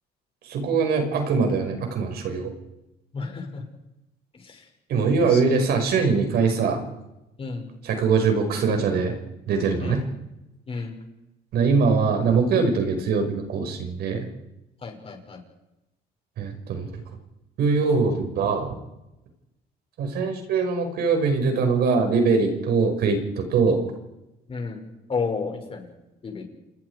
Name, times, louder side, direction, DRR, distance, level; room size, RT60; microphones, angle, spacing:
voice 1, 0.4-2.5 4.9-6.8 7.8-9.2 9.5-10.0 11.5-14.3 16.4-16.9 17.6-18.8 20.0-23.8, right 4 dB, 70° right, 5 dB, 5.6 m, -22 dB
voice 2, 3.1-3.6 4.3-4.7 5.2-5.4 7.4-7.7 9.8-10.0 10.7-10.9 14.8-15.4 24.5-24.8 25.1-25.9 26.2-26.5, left 4 dB, 35° left, 2 dB, 6.5 m, -32 dB
29.0 x 20.5 x 4.9 m, 0.95 s
cardioid pair, 110°, 17 cm